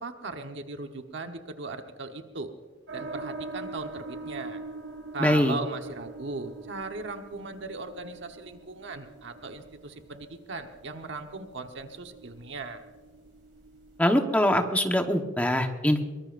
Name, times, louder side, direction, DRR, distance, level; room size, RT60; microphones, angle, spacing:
voice 1, 0.0-2.5 2.9-4.6 5.1-12.8, right 3 dB, 65° right, 5 dB, 1.2 m, -38 dB
sound 1, 2.9-14.0, right 3 dB, 80° right, 4.4 m, -43 dB
voice 2, 5.2-5.6 14.0-16.0, left 1 dB, 10° left, 4 dB, 1.2 m, -23 dB
23.0 x 21.5 x 2.6 m, 1.4 s
head